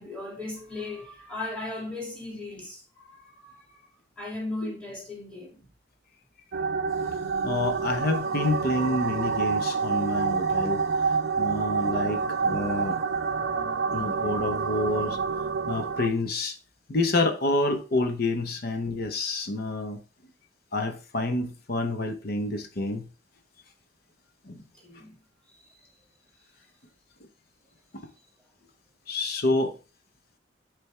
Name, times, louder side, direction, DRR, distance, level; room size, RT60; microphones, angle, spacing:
voice 1, 0.0-3.8 4.2-5.7 24.5-25.2 25.8-25.9, left 2 dB, 5° left, 2.1 m, -37 dB
sound 1, 6.5-16.1, right 5 dB, 65° right, 0.5 m, -28 dB
voice 2, 7.4-13.0 13.9-15.2 15.7-16.6 16.9-20.0 20.7-23.1 24.4-24.6 27.9-28.1 29.1-29.7, left 2 dB, 55° left, 0.9 m, -28 dB
8.5 x 3.5 x 3.2 m
head